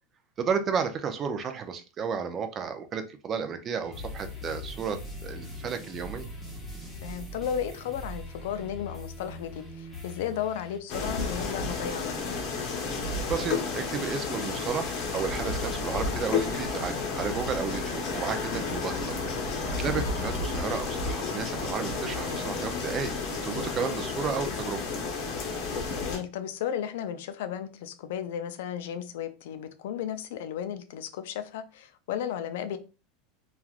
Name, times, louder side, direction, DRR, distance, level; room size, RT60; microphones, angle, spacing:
voice 1, 0.4-6.3 13.3-19.1 19.4-23.1 23.4-24.8, right 6 dB, 30° right, 0.4 m, -32 dB
sound 1, 3.8-10.8, left 1 dB, 10° left, 0.9 m, -41 dB
voice 2, 7.0-12.1 20.0-20.1 25.9-32.8, left 9 dB, 75° left, 0.4 m, -34 dB
sound 2, 10.9-26.2, left 4 dB, 50° left, 0.7 m, -31 dB
3.1 x 2.4 x 2.4 m
supercardioid pair, 135°, 0 cm